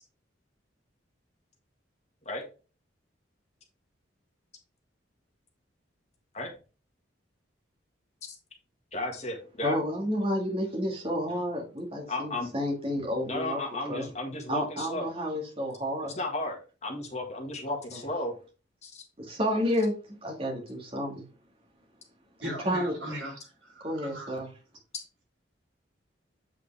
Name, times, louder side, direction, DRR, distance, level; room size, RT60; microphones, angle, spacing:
voice 1, 8.9-9.8 12.1-12.5 13.2-15.1 16.0-18.3 18.8-19.1, left 2 dB, 35° left, 2 dB, 1.7 m, -34 dB
voice 2, 9.6-13.6 13.9-14.1 14.5-16.2 17.9-18.0 19.2-19.9 20.2-21.2 22.7-22.9 23.8-24.5, equal, 30° right, -1 dB, 2.3 m, -30 dB
voice 3, 22.4-24.4, equal, 70° right, -2 dB, 3.9 m, -39 dB
8.3 x 5.0 x 3.4 m, 0.34 s
head